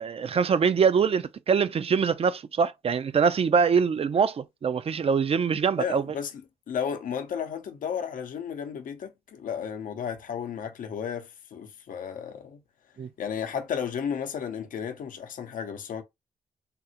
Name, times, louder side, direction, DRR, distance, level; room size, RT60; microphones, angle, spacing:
voice 1, 0.0-6.0 13.0-13.1, right 6 dB, 45° right, 0.4 m, -24 dB
voice 2, 5.8-6.4 6.7-12.6 13.2-16.0, left 7 dB, 70° left, 0.6 m, -33 dB
3.6 x 2.0 x 2.7 m
supercardioid pair, 50°, 14 cm